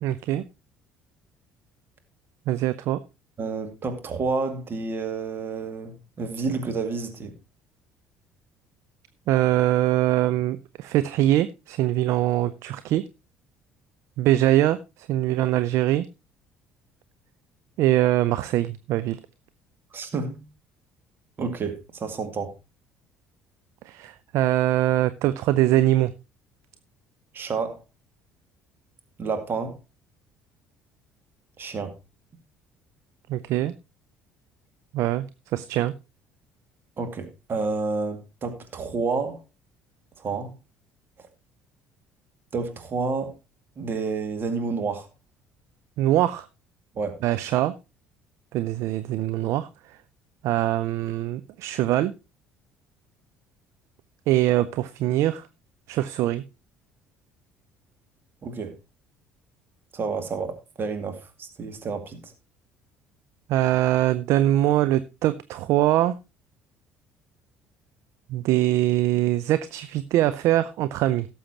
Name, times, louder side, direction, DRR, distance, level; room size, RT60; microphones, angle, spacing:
voice 1, 0.0-0.4 2.5-3.0 9.3-13.0 14.2-16.1 17.8-19.2 23.9-26.1 33.3-33.7 34.9-35.3 35.5-35.9 46.0-46.5 47.2-47.7 48.5-50.0 50.4-52.1 54.3-55.5 55.9-56.4 63.5-66.1 68.3-71.3, right 14 dB, 55° right, 14 dB, 0.5 m, -23 dB
voice 2, 3.4-7.4 19.9-20.4 21.4-22.5 27.3-27.8 29.2-29.8 31.6-31.9 37.0-39.4 40.2-40.5 42.5-43.3 43.8-45.1 47.0-47.2 58.4-58.7 59.9-62.3, right 4 dB, 35° right, 7 dB, 2.2 m, -30 dB
17.5 x 7.1 x 2.9 m, 0.27 s
figure-of-eight pair, 55°, 6 cm